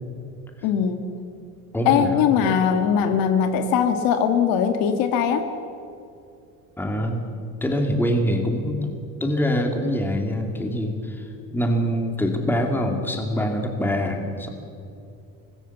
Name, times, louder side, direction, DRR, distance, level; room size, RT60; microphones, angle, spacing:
voice 1, 0.6-1.0 1.9-5.4, left 7 dB, 80° left, 6 dB, 1.9 m, -20 dB
voice 2, 1.7-2.2 6.8-7.2 7.6-8.9 9.2-14.5, equal, 5° left, 3 dB, 2.4 m, -24 dB
25.5 x 20.0 x 7.2 m, 2.6 s
cardioid pair, 170°, 35 cm